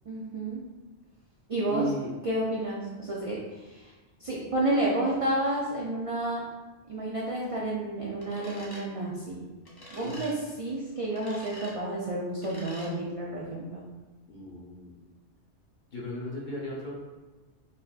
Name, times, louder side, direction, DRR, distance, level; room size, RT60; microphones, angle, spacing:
voice 1, 0.1-0.6 1.5-1.9 2.2-3.9 4.2-6.4 6.9-9.5 9.9-13.8, right 1 dB, 55° right, -5 dB, 0.4 m, -30 dB
voice 2, 1.7-2.1 10.0-10.3 14.3-14.9 15.9-16.9, equal, 50° left, -4 dB, 0.8 m, -35 dB
sound 1, 8.2-8.8 9.6-10.3 11.1-11.7 12.4-12.9, equal, 30° left, 0.5 m, -46 dB
4.1 x 2.6 x 2.4 m, 1.2 s
omnidirectional pair, 1.2 m